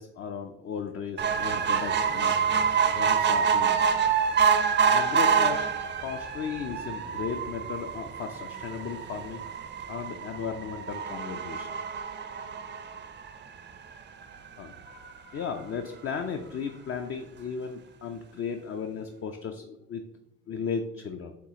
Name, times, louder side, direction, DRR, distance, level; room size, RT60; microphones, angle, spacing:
voice 1, 0.0-2.6 2.9-3.9 4.9-5.7 6.0-9.4 9.9-11.7 14.6-20.0 20.5-21.4, left 6 dB, 40° left, 5 dB, 0.5 m, -36 dB
sound 1, 1.2-13.8 14.3-14.4 14.7-14.8 15.1-15.2, right 6 dB, 30° right, 0.5 m, -27 dB
7.0 x 2.4 x 2.9 m, 0.85 s
supercardioid pair, 70°, 35 cm